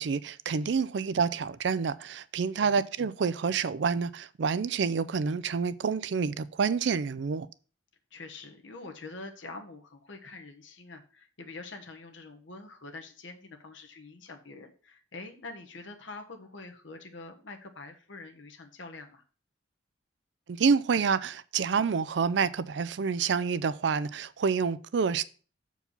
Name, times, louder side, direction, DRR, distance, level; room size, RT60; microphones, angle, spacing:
voice 1, 0.0-7.5 20.5-25.2, right 5 dB, 65° right, 0.4 m, -28 dB
voice 2, 8.1-19.2, left 3 dB, 80° left, 1.2 m, -45 dB
7.2 x 4.6 x 5.4 m
head